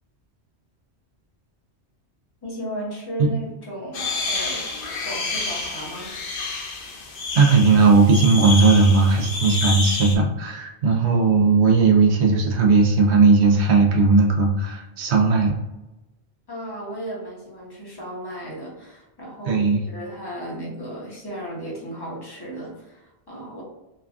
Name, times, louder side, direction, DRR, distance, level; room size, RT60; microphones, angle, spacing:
voice 1, 2.4-4.7 5.0-6.1 16.5-23.6, right 1 dB, 25° left, -4 dB, 0.7 m, -35 dB
sound 1, 3.9-10.2, left 3 dB, 60° left, 0.7 m, -29 dB
voice 2, 7.3-15.5 19.5-19.8, right 4 dB, 85° right, 1 dB, 0.9 m, -17 dB
3.2 x 2.3 x 2.3 m, 0.98 s
omnidirectional pair, 1.1 m